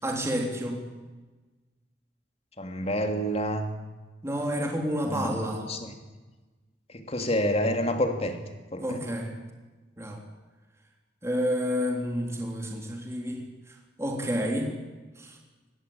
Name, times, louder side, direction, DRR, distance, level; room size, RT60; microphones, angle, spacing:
voice 1, 0.0-1.0 4.2-5.7 8.8-9.3 10.0-10.2 11.2-14.7 15.2-15.4, equal, 15° right, 1 dB, 3.4 m, -30 dB
voice 2, 2.6-3.7 5.1-5.9 6.9-8.4 8.7-9.0, equal, 30° left, 6 dB, 3.0 m, -28 dB
24.5 x 21.0 x 8.7 m, 1.2 s
head